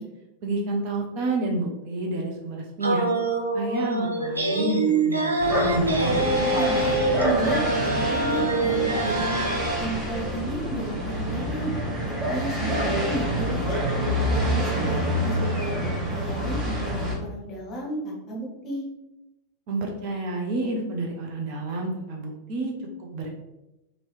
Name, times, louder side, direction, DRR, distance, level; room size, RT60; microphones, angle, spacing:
voice 1, 0.4-3.1 3.5-6.2 19.7-22.7 23.0-23.3, right 2 dB, 45° right, 0 dB, 0.6 m, -29 dB
sound 1, 2.8-9.8, right 2 dB, 80° right, 0.5 m, -25 dB
sound 2, 5.4-17.1, equal, 20° right, 1.0 m, -27 dB
voice 2, 6.4-7.0 7.4-9.3 9.8-11.7 12.1-13.8 14.2-18.8, right 1 dB, 30° left, -2 dB, 1.0 m, -33 dB
3.0 x 2.6 x 3.1 m, 0.95 s
figure-of-eight pair, 90°, 0 cm